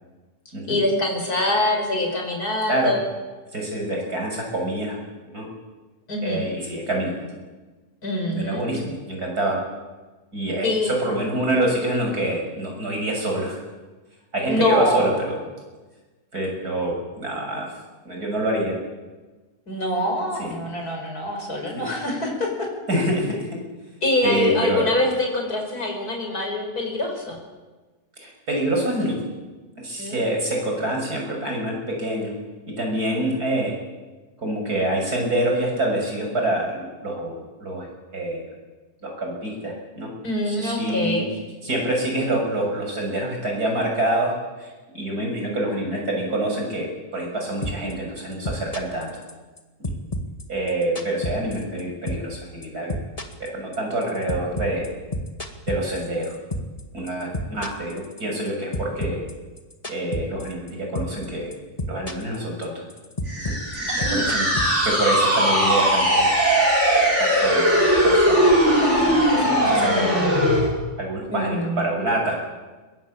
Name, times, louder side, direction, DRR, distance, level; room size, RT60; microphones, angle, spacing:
voice 1, 0.7-3.0 6.1-6.6 8.0-8.6 10.6-11.0 14.5-15.1 19.7-22.5 24.0-27.4 30.0-30.2 40.2-41.3 63.9-64.4 71.3-71.9, left 1 dB, 70° left, 2 dB, 5.9 m, -24 dB
voice 2, 3.5-5.0 5.3-5.5 6.2-7.4 8.3-9.6 10.3-13.6 14.3-15.4 16.3-17.7 18.1-18.8 20.4-20.5 21.8-21.9 22.9-23.5 24.2-24.9 28.2-29.1 29.8-32.3 32.8-33.8 34.4-37.9 38.1-38.4 39.0-40.1 40.5-41.2 41.6-44.3 44.6-49.1 49.8-49.9 50.5-53.0 53.4-54.9 55.7-56.3 56.9-59.2 59.9-61.5 61.9-62.9 63.4-64.5 64.8-66.3 67.2-70.3 71.0-72.4, right 1 dB, 75° right, 0 dB, 7.5 m, -26 dB
sound 1, 47.6-47.9 48.2-49.6 49.8-51.8 52.1-52.4 52.6-56.8 57.1-58.5 58.7-60.7 61.0-61.3 61.5-62.4 62.6-65.2, left 1 dB, 25° left, 2.0 m, -29 dB
sound 2, 63.3-70.7, equal, 45° right, 5.3 m, -19 dB
22.0 x 21.5 x 8.8 m, 1.3 s
omnidirectional pair, 1.7 m